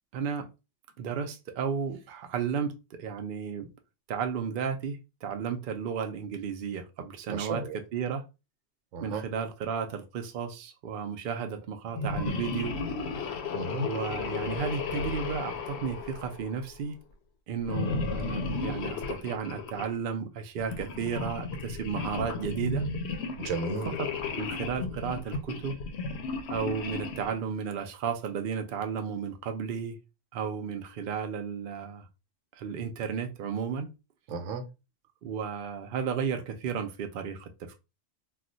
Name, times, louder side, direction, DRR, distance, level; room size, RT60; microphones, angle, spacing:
voice 1, 0.1-0.5 1.0-3.7 4.1-7.6 7.9-8.2 9.0-12.7 13.8-17.0 17.5-22.9 24.0-24.1 24.4-25.8 26.5-30.0 30.3-32.1 32.5-33.9 35.2-37.8, right 6 dB, 60° right, 0.6 m, -33 dB
voice 2, 7.3-7.8 8.9-9.2 13.5-13.9 23.4-24.0 34.3-34.7, right 3 dB, 90° right, 1.0 m, -33 dB
sound 1, 11.9-16.8 17.6-19.9 20.6-27.4, left 4 dB, 65° left, 0.8 m, -34 dB
2.4 x 2.2 x 3.9 m
omnidirectional pair, 1.3 m